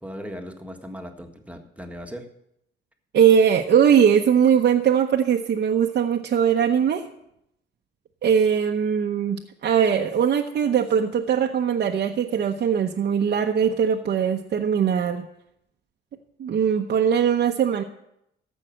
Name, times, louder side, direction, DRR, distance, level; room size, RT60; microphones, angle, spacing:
voice 1, 0.0-2.3, equal, 5° right, 4 dB, 1.6 m, -38 dB
voice 2, 3.1-7.1 8.2-15.2 16.4-17.8, right 8 dB, 55° right, 1 dB, 0.9 m, -20 dB
14.5 x 5.7 x 7.5 m, 0.79 s
cardioid pair, 90°, 20 cm